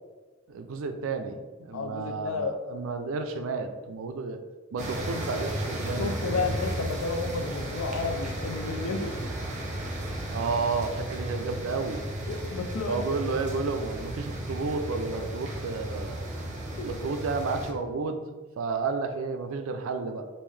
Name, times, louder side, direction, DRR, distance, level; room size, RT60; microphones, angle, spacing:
voice 1, 0.5-4.4 4.7-6.5 10.3-12.0 12.9-16.2 16.8-20.3, right 4 dB, 75° right, 7 dB, 0.4 m, -32 dB
voice 2, 1.7-2.5 5.0-5.1 6.0-9.1 12.3-13.1 16.8-16.9, left 4 dB, 70° left, 6 dB, 0.4 m, -31 dB
sound 1, 4.8-17.7, right 1 dB, 35° right, 0.7 m, -34 dB
3.6 x 2.5 x 3.3 m, 1.3 s
head